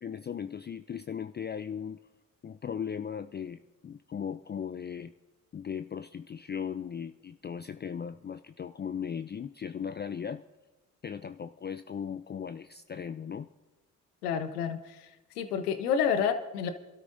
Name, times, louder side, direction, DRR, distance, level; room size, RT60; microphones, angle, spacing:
voice 1, 0.0-2.0 2.4-5.1 5.5-10.4 11.0-13.5, left 7 dB, 25° left, 11 dB, 0.4 m, -37 dB
voice 2, 14.2-14.8 15.4-16.7, left 7 dB, 85° left, 10 dB, 0.9 m, -28 dB
26.0 x 13.0 x 2.7 m, 1.1 s
hypercardioid pair, 50°, 45 cm